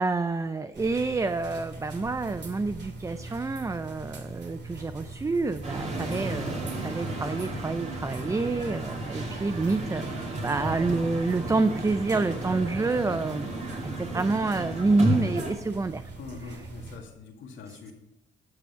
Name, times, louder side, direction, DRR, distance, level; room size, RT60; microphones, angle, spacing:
voice 1, 0.0-13.5 14.0-16.0, right 3 dB, 15° right, 12 dB, 0.4 m, -28 dB
sound 1, 0.7-17.0, right 3 dB, 60° right, 2.2 m, -42 dB
sound 2, 5.6-15.5, right 1 dB, 35° right, 2.7 m, -33 dB
voice 2, 16.2-17.9, left 5 dB, 75° left, 2 dB, 2.1 m, -43 dB
12.0 x 6.9 x 5.6 m, 0.95 s
cardioid pair, 90°, 20 cm